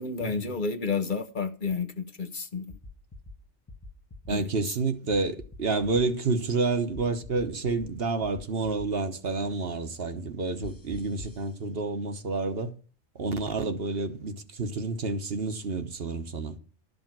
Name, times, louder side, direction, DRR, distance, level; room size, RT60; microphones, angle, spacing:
voice 1, 0.0-2.7 4.3-4.4, left 4 dB, 50° left, 0.9 m, -30 dB
sound 1, 2.7-3.4 3.7-4.3 5.1-6.0 6.9-7.9 8.2-8.9 10.6-11.4, left 2 dB, 20° left, 0.8 m, -44 dB
voice 2, 4.3-12.7 13.1-16.6, right 3 dB, 60° right, 1.3 m, -29 dB
12.5 x 5.3 x 7.4 m
omnidirectional pair, 1.2 m